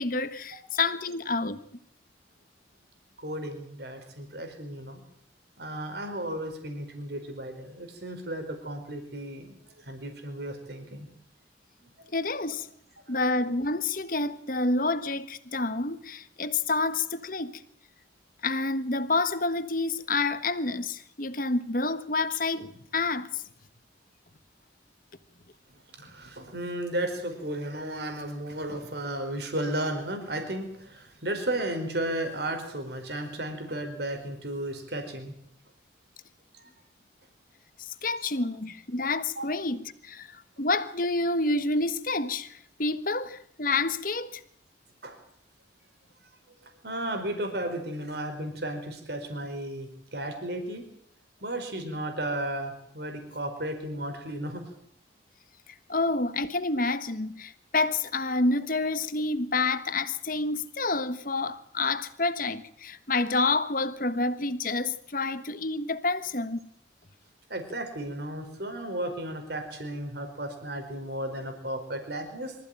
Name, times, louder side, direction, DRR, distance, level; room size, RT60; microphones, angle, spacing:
voice 1, 0.0-1.6 12.1-12.7 13.1-17.6 18.4-23.4 37.8-44.4 55.9-66.6, left 3 dB, 50° left, 1.5 m, -28 dB
voice 2, 3.2-5.0 5.6-9.5 9.8-11.1 13.1-13.2 25.9-35.3 39.4-39.5 45.0-45.2 46.6-50.8 51.4-54.6 67.5-72.5, right 1 dB, 60° right, 4.6 m, -34 dB
24.5 x 15.0 x 9.1 m
head